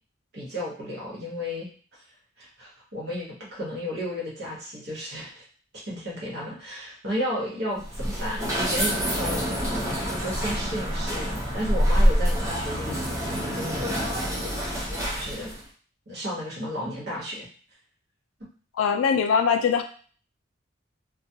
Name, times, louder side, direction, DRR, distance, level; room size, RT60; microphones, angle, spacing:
voice 1, 0.3-1.7 2.4-5.4 5.9-9.5 10.1-14.0 15.1-15.5 16.1-17.5 18.4-18.5, equal, 55° right, -5 dB, 1.1 m, -33 dB
sound 1, 7.8-15.6, equal, 15° right, 0.7 m, -26 dB
voice 2, 18.8-19.8, left 6 dB, 85° left, 7 dB, 0.3 m, -21 dB
2.2 x 2.2 x 2.7 m, 0.41 s
head